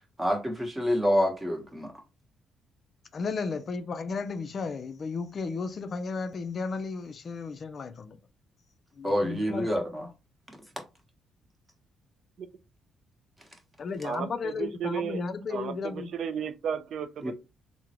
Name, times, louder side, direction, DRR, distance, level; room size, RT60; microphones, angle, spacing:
voice 1, 0.2-1.9 9.0-10.1 17.2-17.3, equal, 15° right, 1.1 m, -27 dB
voice 2, 3.1-8.2 9.0-9.8 13.8-16.1, left 4 dB, 50° left, 0.4 m, -34 dB
voice 3, 14.0-15.2 15.5-17.3, right 7 dB, 65° right, 0.4 m, -34 dB
3.6 x 2.0 x 2.9 m
cardioid pair, 90°, 0 cm